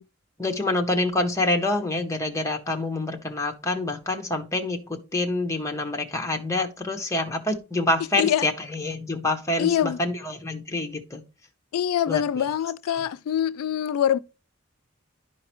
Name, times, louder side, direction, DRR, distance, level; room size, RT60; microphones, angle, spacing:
voice 1, 0.4-11.2 12.1-12.4 12.9-13.1, left 2 dB, 15° left, 0.9 m, -27 dB
voice 2, 9.6-10.0 11.7-14.2, left 9 dB, 85° left, 0.3 m, -24 dB
11.0 x 4.7 x 3.0 m
head